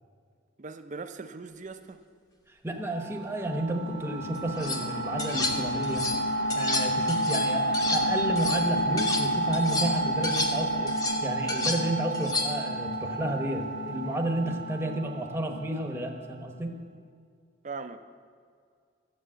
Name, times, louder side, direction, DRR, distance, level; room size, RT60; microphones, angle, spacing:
voice 1, 0.6-2.0 17.6-18.0, right 4 dB, 40° right, 9 dB, 0.6 m, -39 dB
voice 2, 2.6-6.1 6.5-10.9 11.2-16.7, right 1 dB, 10° right, 3 dB, 1.0 m, -31 dB
sound 1, 2.8-16.2, right 1 dB, 60° left, 1.1 m, -30 dB
sound 2, 4.3-4.8 5.2-6.2 6.5-9.3 9.5-12.7, left 2 dB, 20° left, 1.1 m, -32 dB
12.5 x 8.1 x 7.5 m, 2.2 s
head